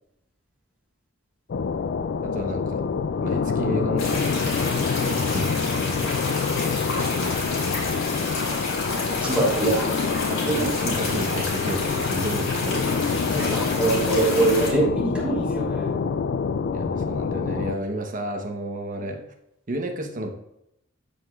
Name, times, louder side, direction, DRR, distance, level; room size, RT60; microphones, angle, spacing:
sound 1, 1.5-17.8, left 5 dB, 55° left, 0.3 m, -26 dB
voice 1, 2.2-2.9 3.2-5.5 6.0-6.3 9.2-9.7 10.3-13.4 16.7-19.2 19.7-20.3, right 1 dB, 40° right, 3 dB, 1.0 m, -32 dB
sound 2, 4.0-14.7, left 2 dB, 80° left, 3.0 m, -30 dB
voice 2, 9.1-9.9 10.5-10.7 13.3-16.0, right 2 dB, 5° right, -6 dB, 2.9 m, -23 dB
13.5 x 4.9 x 2.4 m, 0.82 s
head